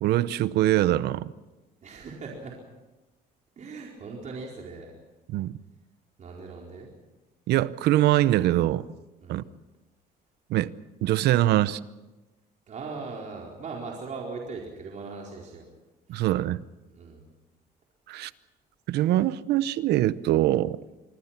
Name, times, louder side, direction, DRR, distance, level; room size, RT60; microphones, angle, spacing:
voice 1, 0.0-1.3 5.3-5.5 7.5-8.9 9.3-9.4 10.5-10.7 11.0-11.8 16.1-16.6 18.1-18.3 18.9-20.8, right 14 dB, 75° right, 0.8 m, -23 dB
voice 2, 1.8-2.6 3.6-4.9 6.2-6.9 9.2-9.4 12.7-15.7 16.1-16.2 16.9-17.2 18.1-18.3, right 4 dB, 45° right, 4.4 m, -39 dB
27.0 x 21.0 x 5.9 m
cardioid pair, 110°, 17 cm